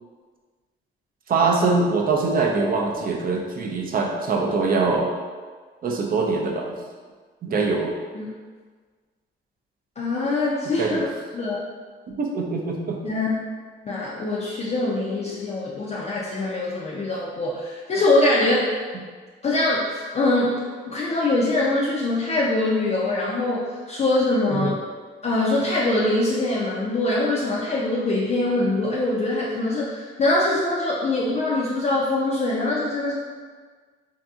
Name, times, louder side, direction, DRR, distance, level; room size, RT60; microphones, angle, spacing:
voice 1, 1.3-5.1 5.8-6.7 7.4-7.9 10.8-11.0 12.2-13.0 24.5-24.7, right 3 dB, 45° right, 0 dB, 0.4 m, -23 dB
voice 2, 10.0-11.1 11.3-11.6 13.0-13.3 13.8-18.7 19.4-20.5 20.8-24.8 25.2-33.2, left 2 dB, 35° left, -5 dB, 0.4 m, -23 dB
2.7 x 2.6 x 2.3 m, 1.5 s
cardioid pair, 90°, 20 cm